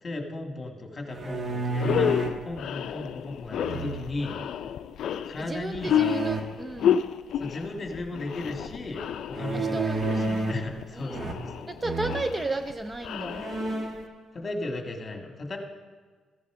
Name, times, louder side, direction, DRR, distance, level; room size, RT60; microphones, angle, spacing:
voice 1, 0.0-4.4 5.3-6.0 7.4-9.0 9.3-11.7 14.3-15.6, left 2 dB, 30° left, 3 dB, 1.7 m, -36 dB
sound 1, 1.1-2.4 3.6-4.3 5.8-6.4 9.3-10.7 11.1-11.6 11.8-12.3 12.9-13.0 13.3-14.1, right 3 dB, 40° right, 1.3 m, -30 dB
sound 2, 1.2-1.3 1.7-14.1, left 9 dB, 70° left, 0.4 m, -31 dB
voice 2, 5.4-7.1 9.5-10.6 10.9-11.3 11.7-13.5, right 2 dB, 20° right, 9 dB, 0.4 m, -34 dB
14.5 x 9.7 x 3.7 m, 1.5 s
cardioid pair, 90°, 0 cm